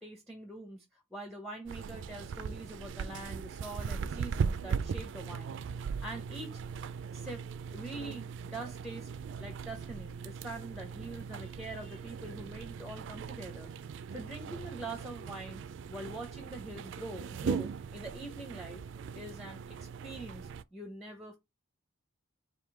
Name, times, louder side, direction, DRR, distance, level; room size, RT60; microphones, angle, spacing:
voice 1, 0.0-5.5 6.0-6.6 7.1-7.4 7.7-9.1 9.4-13.7 14.1-15.6 15.9-18.8 19.1-21.4, right 2 dB, ahead, 0.6 m, -44 dB
sound 1, 1.7-20.6, right 6 dB, 60° right, 0.3 m, -39 dB
3.6 x 2.7 x 4.6 m
head